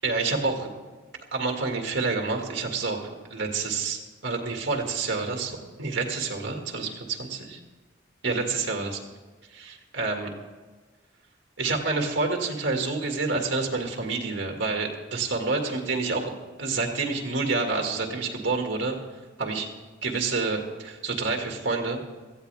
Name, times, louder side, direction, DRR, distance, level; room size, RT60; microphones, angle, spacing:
voice 1, 0.0-0.7 1.3-7.6 8.2-9.0 9.5-10.3 11.6-16.3 16.6-19.0 19.4-19.7 20.0-22.0, right 3 dB, 75° right, 2 dB, 2.1 m, -28 dB
18.0 x 14.0 x 3.5 m, 1.3 s
head